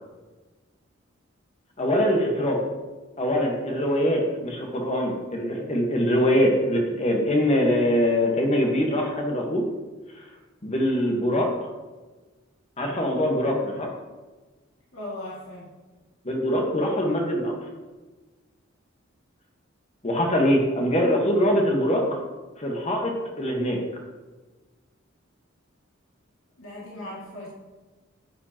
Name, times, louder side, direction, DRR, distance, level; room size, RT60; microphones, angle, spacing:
voice 1, 1.8-2.6 3.2-9.7 10.2-10.3 10.6-11.5 12.8-13.9 16.2-17.5 20.0-22.2 22.6-23.1 23.4-23.8, equal, 35° left, 1 dB, 1.3 m, -23 dB
voice 2, 14.9-15.7 20.3-20.6 26.6-27.5, left 1 dB, 75° left, -7 dB, 2.2 m, -38 dB
9.7 x 8.1 x 2.9 m, 1.2 s
head